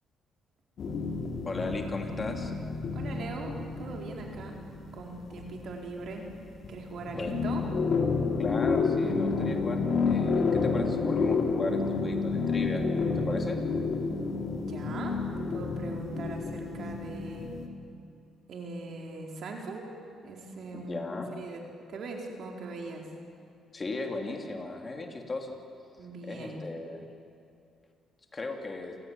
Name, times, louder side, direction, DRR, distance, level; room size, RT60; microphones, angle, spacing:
sound 1, 0.8-6.3 6.6-17.7, left 4 dB, 60° left, 2.9 m, -30 dB
voice 1, 1.4-2.5 7.1-7.5 8.4-12.9 13.2-13.6 20.7-21.4 23.7-25.5 26.2-27.1 28.3-29.0, left 3 dB, 30° left, 3 dB, 3.2 m, -36 dB
voice 2, 2.9-4.6 4.9-6.3 6.7-7.6 14.6-17.5 18.5-19.9 20.2-21.0 21.3-21.6 21.9-23.1 26.0-26.6, right 3 dB, 65° right, 1 dB, 4.5 m, -40 dB
29.0 x 17.0 x 9.2 m, 2.6 s
cardioid pair, 90°, 0 cm